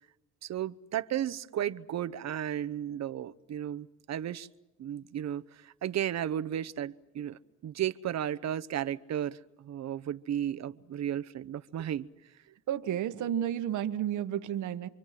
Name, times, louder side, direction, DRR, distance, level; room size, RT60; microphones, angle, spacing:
voice 1, 0.4-4.5 4.8-12.1, right 10 dB, 60° right, 12 dB, 0.9 m, -34 dB
voice 2, 12.7-14.9, right 10 dB, 75° right, 9 dB, 1.3 m, -31 dB
28.5 x 24.5 x 7.6 m, 1.0 s
cardioid pair, 90°, 30 cm